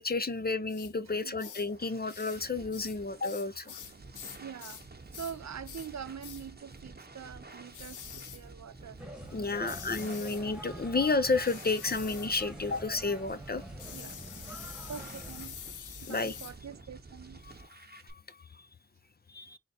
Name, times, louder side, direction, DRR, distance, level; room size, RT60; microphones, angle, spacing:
voice 1, 0.0-3.7 9.3-13.6 16.1-16.4 17.9-18.4 19.3-19.6, left 3 dB, 30° left, 0.6 m, -31 dB
sound 1, 0.7-0.9 1.4-1.7 2.1-2.4 2.7-4.9 5.1-5.4 5.6-5.9 6.2-6.5 7.7-8.4 9.6-10.4 11.4-12.3 13.8-16.6, left 9 dB, 75° left, 0.5 m, -46 dB
sound 2, 1.1-18.1, right 3 dB, 30° right, 0.9 m, -50 dB
voice 2, 1.2-1.5 3.4-3.5 3.8-4.8 5.1-9.0 9.6-9.8 13.9-14.2 14.5-14.6 14.9-15.6 16.0-17.4, right 7 dB, 60° right, 0.5 m, -44 dB
sound 3, 9.0-15.5, right 1 dB, 5° right, 1.3 m, -46 dB
3.9 x 2.1 x 4.2 m
cardioid pair, 45°, 30 cm